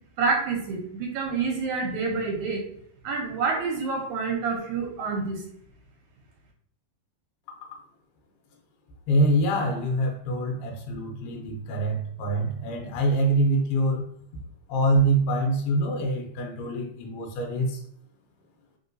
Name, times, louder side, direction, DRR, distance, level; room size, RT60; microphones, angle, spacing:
voice 1, 0.2-2.6 3.0-5.4, right 4 dB, 80° right, 1 dB, 1.9 m, -27 dB
voice 2, 9.1-14.1 14.7-17.8, right 1 dB, 80° left, 1 dB, 2.2 m, -25 dB
4.3 x 3.7 x 2.5 m, 0.66 s
omnidirectional pair, 3.7 m